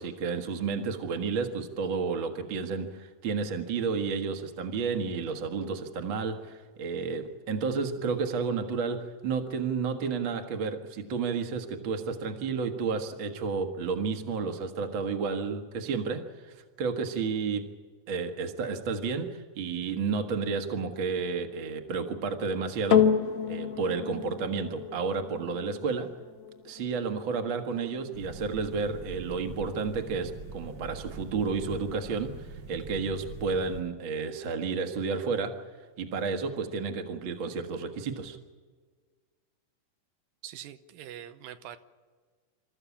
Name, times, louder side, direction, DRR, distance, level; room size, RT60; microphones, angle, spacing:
voice 1, 0.0-16.2 16.8-17.6 18.1-23.1 23.5-26.1 26.6-35.6 36.0-38.4, right 5 dB, 45° right, 5 dB, 2.0 m, -31 dB
sound 1, 22.9-31.5 32.2-32.3, left 8 dB, 65° left, 2.1 m, -31 dB
sound 2, 28.1-33.8, right 4 dB, 60° right, 0.9 m, -43 dB
voice 2, 40.4-41.8, right 11 dB, 85° right, 10 dB, 2.6 m, -43 dB
27.5 x 14.0 x 8.5 m, 1.5 s
omnidirectional pair, 3.9 m